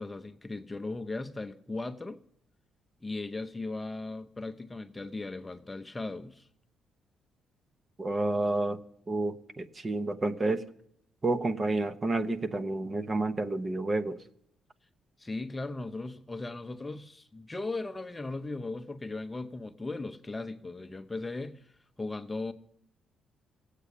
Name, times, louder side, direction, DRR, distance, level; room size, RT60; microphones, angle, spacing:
voice 1, 0.0-2.2 3.0-6.5 15.2-21.7 22.0-22.5, left 2 dB, 15° left, 0.8 m, -37 dB
voice 2, 8.0-8.8 9.1-10.6 11.2-14.2, right 2 dB, 30° right, 1.0 m, -30 dB
17.0 x 8.3 x 8.4 m
cardioid pair, 90°, 0 cm